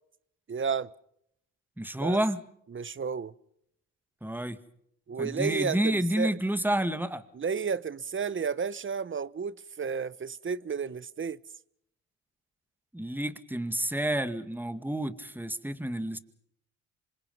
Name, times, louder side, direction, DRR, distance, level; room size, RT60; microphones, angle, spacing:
voice 1, 0.5-0.9 2.0-2.2 2.7-3.3 5.1-6.3 7.3-11.4, right 6 dB, 35° right, 1.1 m, -32 dB
voice 2, 1.8-2.4 4.2-4.6 5.2-7.2 12.9-16.2, right 1 dB, 5° right, 2.1 m, -29 dB
27.5 x 25.0 x 5.5 m
supercardioid pair, 70°, 35 cm